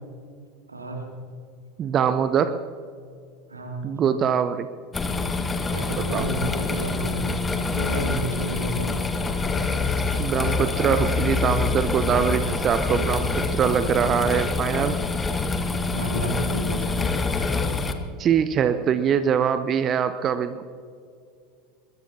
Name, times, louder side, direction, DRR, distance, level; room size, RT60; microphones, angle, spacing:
voice 1, 0.7-1.1 3.5-3.9 5.7-7.4 7.7-9.1 15.9-17.0, right 1 dB, 85° right, 1 dB, 2.5 m, -31 dB
voice 2, 1.8-2.5 3.8-4.7 6.1-6.2 10.2-15.0 18.2-20.6, right 8 dB, 35° right, 11 dB, 0.7 m, -23 dB
sound 1, 4.9-17.9, left 4 dB, 20° left, 1.3 m, -26 dB
22.0 x 21.0 x 2.8 m, 2.3 s
figure-of-eight pair, 80°, 0 cm